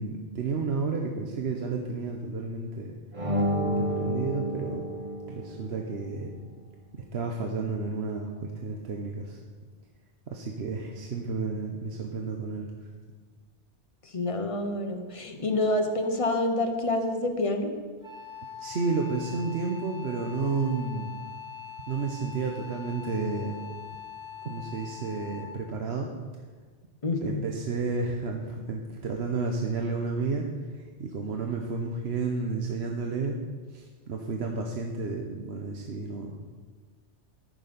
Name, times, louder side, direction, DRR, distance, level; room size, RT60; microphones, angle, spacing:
voice 1, 0.0-3.0 3.4-4.8 5.3-6.3 6.9-9.4 10.3-12.7 18.6-21.1 21.9-23.6 24.4-26.1 27.2-30.5 30.7-33.4 33.7-36.5, right 4 dB, 65° right, 2 dB, 1.1 m, -31 dB
sound 1, 3.1-5.8, equal, 30° right, 1.1 m, -30 dB
voice 2, 14.0-17.7 27.0-27.4, left 2 dB, 30° left, 5 dB, 0.9 m, -27 dB
Wind instrument woodwind instrument, 18.0-25.6, left 8 dB, 5° right, 4.0 m, -42 dB
13.5 x 6.6 x 5.2 m, 1.5 s
omnidirectional pair, 1.2 m